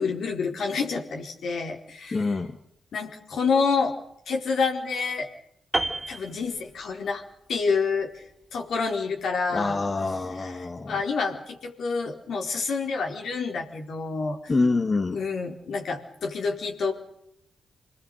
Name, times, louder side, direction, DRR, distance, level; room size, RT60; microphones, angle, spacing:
voice 1, 0.0-2.4 2.9-3.9 4.3-5.3 6.1-7.2 7.5-8.2 8.5-9.8 10.4-14.5 15.1-16.9, left 4 dB, 75° left, 2 dB, 4.3 m, -28 dB
voice 2, 2.1-2.5 9.5-11.0 14.5-15.2, left 3 dB, 40° left, 5 dB, 2.2 m, -26 dB
Piano, 5.7-7.2 7.5-7.7, right 2 dB, 20° right, 3.8 m, -31 dB
26.5 x 20.0 x 6.7 m, 0.74 s
supercardioid pair, 45°, 0 cm